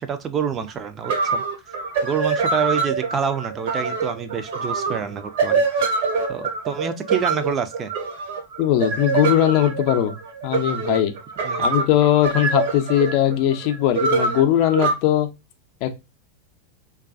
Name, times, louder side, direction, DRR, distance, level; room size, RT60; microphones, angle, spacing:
voice 1, 0.0-1.4 2.0-5.9 6.3-7.9 11.4-11.7, right 7 dB, 30° right, 0.4 m, -27 dB
sound 1, 0.7-0.8 1.0-14.9, right 4 dB, 60° right, 0.8 m, -24 dB
voice 2, 8.6-10.1 10.4-11.1 11.6-15.3 15.8-15.9, left 12 dB, 50° left, 0.4 m, -19 dB
2.3 x 2.2 x 2.5 m
figure-of-eight pair, 90°, 0 cm